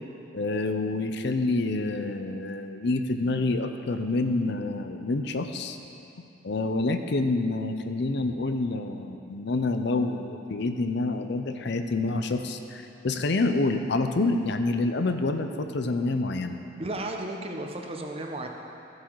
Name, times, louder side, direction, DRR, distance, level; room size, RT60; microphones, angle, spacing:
voice 1, 0.3-5.8 6.4-16.5, left 2 dB, 60° left, 7 dB, 0.6 m, -27 dB
voice 2, 16.8-18.5, right 1 dB, 30° right, 2 dB, 0.8 m, -34 dB
14.0 x 7.7 x 4.7 m, 2.8 s
head